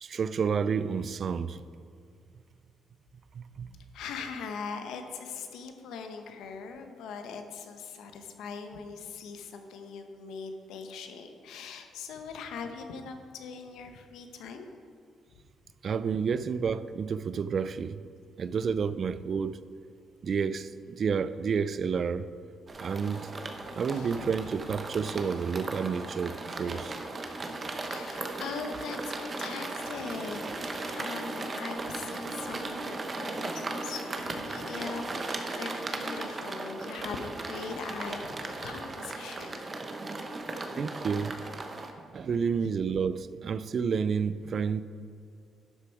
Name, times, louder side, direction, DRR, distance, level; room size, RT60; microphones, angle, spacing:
voice 1, 0.0-1.6 3.3-3.7 15.8-18.0 18.4-19.6 20.2-22.3 22.8-23.3 23.8-27.0 40.8-41.4 42.1-44.8, right 6 dB, 50° right, 0.4 m, -30 dB
voice 2, 3.9-14.7 23.7-24.4 26.6-26.8 27.9-39.6 41.8-42.0 42.3-42.4, left 5 dB, 85° left, 1.0 m, -41 dB
sound 1, 22.7-41.9, right 2 dB, 35° right, 1.0 m, -37 dB
12.0 x 6.8 x 4.6 m
cardioid pair, 90°, 0 cm